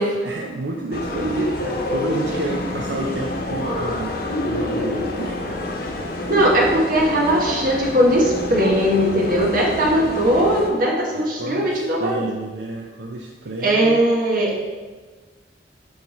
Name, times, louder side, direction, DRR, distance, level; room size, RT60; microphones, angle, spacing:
voice 1, 0.0-4.1 4.5-5.8 11.1-14.0, right 2 dB, 75° right, -1 dB, 0.6 m, -30 dB
sound 1, 0.9-10.7, left 2 dB, 55° left, 0.8 m, -28 dB
voice 2, 6.3-12.2 13.6-14.6, equal, 55° right, -2 dB, 1.3 m, -19 dB
8.0 x 3.3 x 4.2 m, 1.3 s
head